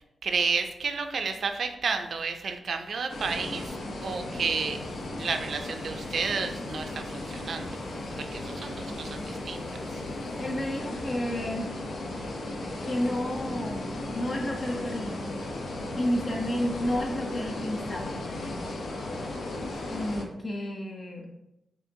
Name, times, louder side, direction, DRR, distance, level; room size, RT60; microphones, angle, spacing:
voice 1, 0.2-3.7 4.0-4.8 5.2-7.7 8.2-9.6 9.9-10.0, right 5 dB, 65° right, 6 dB, 0.5 m, -31 dB
sound 1, 3.1-20.2, left 2 dB, 75° left, 0.7 m, -36 dB
voice 2, 10.4-11.8 12.9-15.3 16.0-18.6 19.9-21.3, left 1 dB, 45° left, 1 dB, 0.6 m, -31 dB
5.6 x 2.9 x 2.7 m, 0.89 s
cardioid pair, 80°, 0 cm